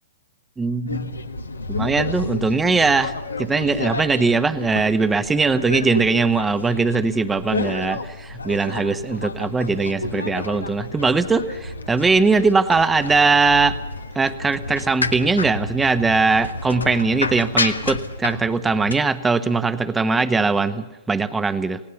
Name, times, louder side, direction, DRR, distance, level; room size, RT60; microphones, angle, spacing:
voice 1, 0.6-1.1 1.7-3.1 3.4-13.8 14.1-21.8, right 4 dB, 10° right, 13 dB, 1.1 m, -20 dB
sound 1, 0.9-19.0, left 3 dB, 85° left, 1.4 m, -30 dB
27.5 x 18.0 x 7.1 m, 1.0 s
figure-of-eight pair, 115°, 0 cm